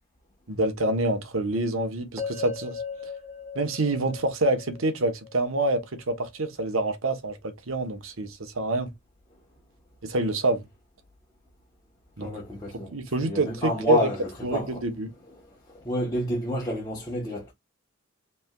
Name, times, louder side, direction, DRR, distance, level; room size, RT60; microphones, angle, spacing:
voice 1, 0.5-2.8 3.5-8.9 10.0-10.7 12.2-12.3 12.9-14.1 14.4-15.1, right 1 dB, 75° right, 1.1 m, -27 dB
sound 1, 2.2-6.3, left 5 dB, 10° right, 1.5 m, -38 dB
voice 2, 12.2-12.9 13.2-14.8 15.5-17.5, equal, 15° left, 1.1 m, -30 dB
5.1 x 3.3 x 2.3 m
head